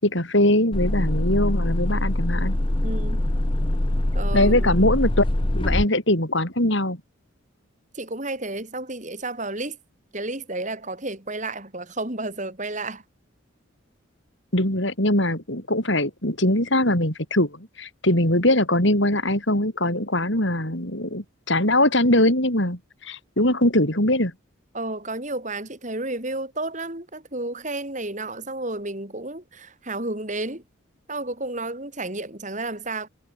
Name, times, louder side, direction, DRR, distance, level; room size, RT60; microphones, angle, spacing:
voice 1, 0.0-2.6 4.3-5.2 5.6-7.0 14.5-24.3, left 1 dB, 60° left, 7.0 m, -22 dB
sound 1, 0.7-5.8, left 1 dB, 25° left, 1.0 m, -23 dB
voice 2, 2.8-3.3 4.1-4.8 7.9-9.8 10.1-13.0 24.7-30.6 31.1-33.1, right 2 dB, 35° right, 3.9 m, -31 dB
head